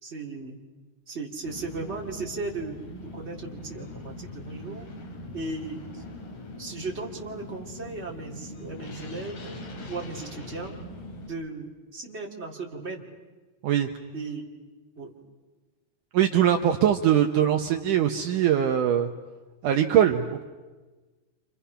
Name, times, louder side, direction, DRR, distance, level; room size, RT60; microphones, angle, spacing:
voice 1, 0.0-0.6 1.1-2.8 3.1-4.9 5.3-6.0 6.6-9.6 9.9-10.8 11.3-13.0 14.1-14.4 15.0-15.2, right 3 dB, 20° right, -1 dB, 2.0 m, -36 dB
sound 1, 1.4-11.3, left 1 dB, 60° left, 4.3 m, -41 dB
voice 2, 16.1-19.1 19.6-20.4, right 10 dB, 70° right, 5 dB, 2.0 m, -22 dB
30.0 x 28.0 x 5.7 m, 1.3 s
omnidirectional pair, 4.6 m